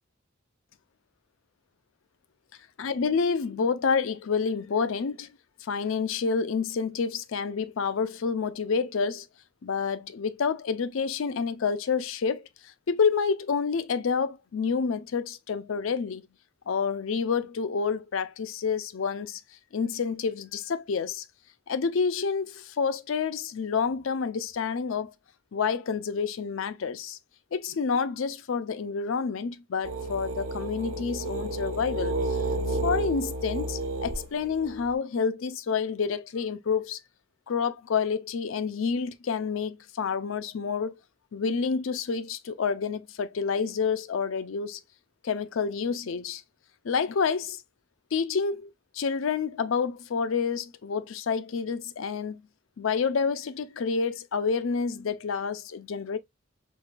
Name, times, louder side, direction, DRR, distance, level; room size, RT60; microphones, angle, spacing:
voice 1, 2.8-5.3 5.6-9.3 9.6-12.5 12.9-16.2 16.7-19.4 19.7-21.2 21.7-25.1 25.5-27.2 27.5-32.2 32.7-37.0 37.5-40.9 41.3-44.8 45.2-46.4 46.8-47.6 48.1-52.4 52.8-56.2, left 5 dB, 70° left, 0.5 m, -28 dB
sound 1, 29.8-34.9, right 2 dB, 75° right, 1.0 m, -31 dB
4.7 x 2.2 x 2.4 m
head